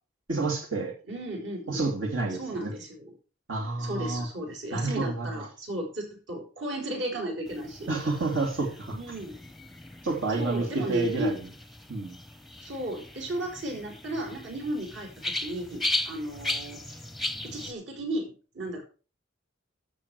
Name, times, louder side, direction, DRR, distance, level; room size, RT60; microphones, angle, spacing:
voice 1, 0.3-0.9 1.7-2.7 3.5-4.3 4.7-5.3 7.9-9.0 10.0-11.3 11.9-12.2, right 3 dB, 85° right, 0 dB, 2.9 m, -29 dB
voice 2, 1.1-1.9 2.3-3.1 3.8-7.9 8.9-9.4 10.4-11.4 12.6-17.0 17.4-18.8, right 1 dB, 70° right, 1 dB, 4.7 m, -34 dB
sound 1, 7.5-17.7, left 1 dB, ahead, 0.6 m, -37 dB
14.0 x 6.5 x 4.9 m, 0.35 s
head